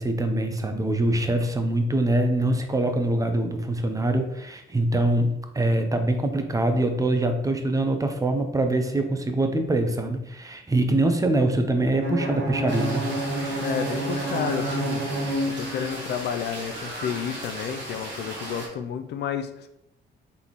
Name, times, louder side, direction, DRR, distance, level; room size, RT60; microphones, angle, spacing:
voice 1, 0.0-13.1, right 1 dB, 15° right, 6 dB, 0.6 m, -24 dB
Bowed string instrument, 12.0-16.1, right 1 dB, 85° right, 1.0 m, -28 dB
sound 1, 12.7-18.7, right 1 dB, 65° right, 1.4 m, -36 dB
voice 2, 13.6-15.0 15.5-19.7, left 8 dB, 60° left, 8 dB, 0.4 m, -31 dB
4.1 x 3.4 x 3.0 m, 0.81 s
cardioid pair, 90°, 20 cm